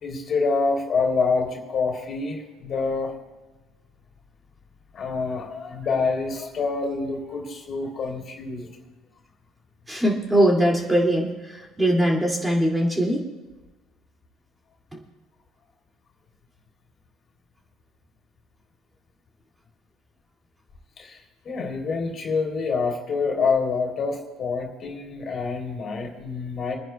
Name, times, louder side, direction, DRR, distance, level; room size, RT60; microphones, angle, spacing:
voice 1, 0.0-3.1 4.9-8.7 21.0-26.8, left 4 dB, 45° left, 1 dB, 3.0 m, -26 dB
voice 2, 9.9-13.2, right 1 dB, 15° right, -1 dB, 2.4 m, -21 dB
29.5 x 10.0 x 2.3 m, 1.2 s
supercardioid pair, 80°, 0 cm